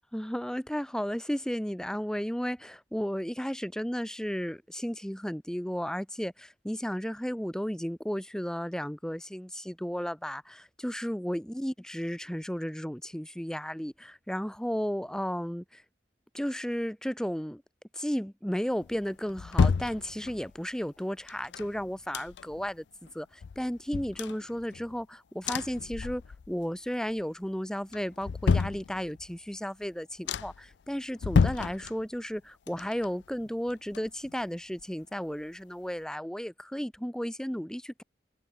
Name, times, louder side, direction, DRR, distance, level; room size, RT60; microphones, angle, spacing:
voice 1, 0.1-15.8 16.3-17.6 17.9-22.8 23.1-26.2 26.5-38.0, equal, 5° left, 0.9 m, -34 dB
sound 1, 18.8-20.6 21.3-22.7 23.1-23.2 23.4-25.0 25.4-26.6 26.9-27.4 27.9-29.4 29.8-29.9 30.3-30.7 31.2-32.4 32.7-34.5 34.8-34.9, left 5 dB, 70° left, 0.4 m, -30 dB
head